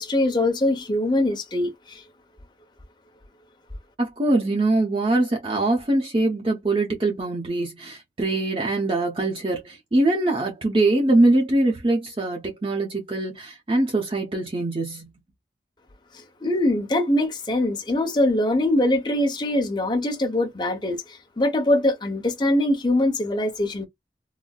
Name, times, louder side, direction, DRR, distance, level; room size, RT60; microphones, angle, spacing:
voice 1, 0.0-2.0 16.4-23.9, left 1 dB, 25° left, 0.9 m, -23 dB
voice 2, 4.0-15.1, right 2 dB, 30° right, 0.7 m, -23 dB
4.0 x 2.1 x 2.3 m
head